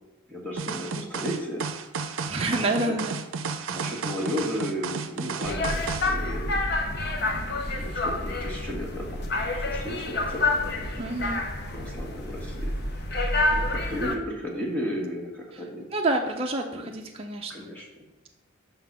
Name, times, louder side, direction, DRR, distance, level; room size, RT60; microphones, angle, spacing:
voice 1, 0.3-1.7 2.6-2.9 3.7-6.5 7.8-11.1 11.7-13.2 13.5-15.9 16.7-16.9 17.5-18.1, equal, 5° left, -2 dB, 1.2 m, -34 dB
sound 1, 0.6-6.1, right 5 dB, 80° right, 0.5 m, -32 dB
voice 2, 2.3-3.2 11.0-11.4 15.9-17.5, right 2 dB, 30° right, 1 dB, 0.5 m, -28 dB
sound 2, 5.4-14.2, left 2 dB, 55° left, 0.8 m, -28 dB
5.6 x 3.8 x 5.9 m, 1.0 s
head